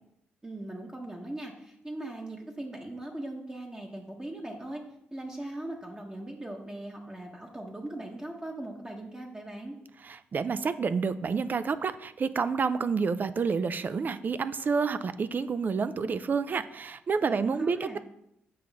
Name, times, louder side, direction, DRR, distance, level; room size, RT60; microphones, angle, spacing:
voice 1, 0.4-4.8 5.1-9.8 17.3-18.0, right 1 dB, 20° right, 0 dB, 1.1 m, -39 dB
voice 2, 10.0-18.0, right 5 dB, 45° right, 14 dB, 0.4 m, -29 dB
7.8 x 5.1 x 3.5 m, 0.80 s
cardioid pair, 65°, 4 cm